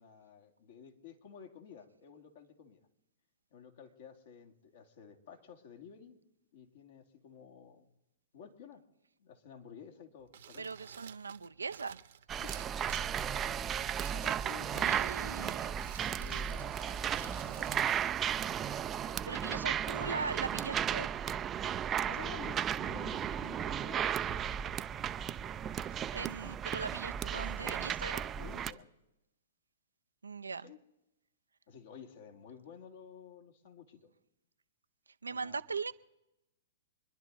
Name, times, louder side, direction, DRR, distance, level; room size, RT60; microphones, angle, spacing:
voice 1, 0.0-2.8 3.5-6.2 6.5-7.8 8.3-8.8 9.2-10.7 12.4-12.6 14.1-17.9 19.0-20.2 22.0-24.6 28.4-28.9 30.6-30.8 31.7-34.1 35.2-35.6, left 7 dB, 60° left, 2.6 m, -52 dB
Crumpling crinkling, 10.2-18.8, right 10 dB, 65° right, 1.0 m, -54 dB
voice 2, 10.6-12.0 14.6-15.7 19.3-21.1 26.1-28.3 30.2-30.7 35.2-35.9, right 4 dB, 90° right, 0.6 m, -40 dB
sound 1, 12.3-28.7, right 9 dB, 25° right, 0.5 m, -35 dB
26.5 x 11.0 x 4.0 m
hypercardioid pair, 120°, 0 cm